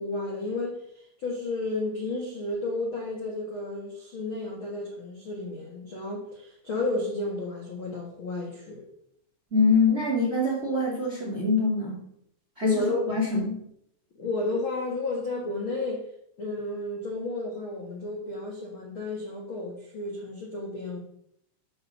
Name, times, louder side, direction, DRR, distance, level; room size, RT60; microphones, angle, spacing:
voice 1, 0.0-8.8 12.6-13.1 14.2-16.0 16.4-21.0, left 2 dB, 55° left, -2 dB, 1.5 m, -32 dB
voice 2, 9.5-12.0 12.6-13.6, left 3 dB, 20° right, -2 dB, 1.8 m, -24 dB
12.0 x 6.5 x 5.4 m, 0.73 s
omnidirectional pair, 4.9 m